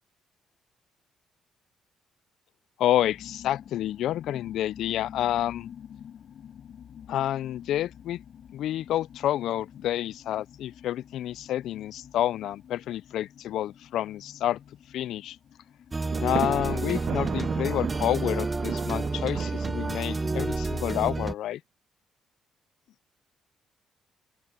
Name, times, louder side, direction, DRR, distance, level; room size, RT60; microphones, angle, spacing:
voice 1, 2.8-5.7 7.1-8.2 8.5-14.6 14.9-15.4 16.2-21.6, left 12 dB, 80° left, 0.3 m, -29 dB
sound 1, 3.0-19.5, left 8 dB, 60° left, 5.8 m, -49 dB
sound 2, 15.9-21.3, right 3 dB, 20° right, 1.2 m, -30 dB
Thunder, 16.1-20.7, right 8 dB, 60° right, 1.2 m, -35 dB
open air
cardioid pair, 90°, 0 cm